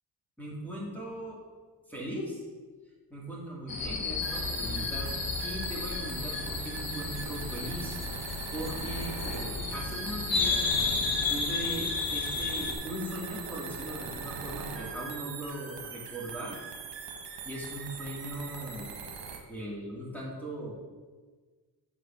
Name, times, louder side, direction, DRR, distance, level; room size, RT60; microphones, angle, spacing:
voice 1, 0.4-1.4 1.9-2.4 3.1-5.1 5.4-8.0 8.5-10.7 11.3-16.6 17.4-19.0 19.5-20.8, right 1 dB, 5° left, -5 dB, 2.2 m, -39 dB
sound 1, 3.7-12.7, left 4 dB, 50° left, 1.2 m, -32 dB
sound 2, 4.2-19.4, right 6 dB, 70° right, 1.4 m, -41 dB
8.0 x 4.1 x 6.7 m, 1.4 s
wide cardioid pair, 145°, 44 cm